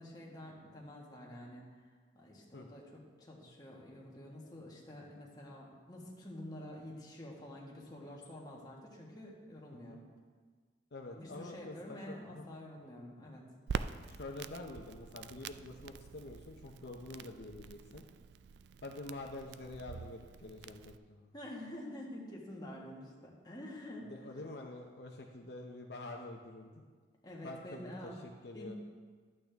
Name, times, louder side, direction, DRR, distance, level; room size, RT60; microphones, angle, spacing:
voice 1, 0.0-1.6 2.1-2.8 3.2-10.0 11.1-13.4 21.3-24.1 27.2-28.2 28.5-28.8, left 1 dB, 20° left, -3 dB, 1.6 m, -48 dB
voice 2, 10.9-12.6 14.0-18.0 18.8-21.3 24.0-26.9 27.4-28.7, left 2 dB, 60° left, 2 dB, 0.6 m, -47 dB
Crackle, 13.7-21.0, right 6 dB, 65° right, 0.3 m, -45 dB
12.0 x 8.6 x 3.4 m, 1.5 s
head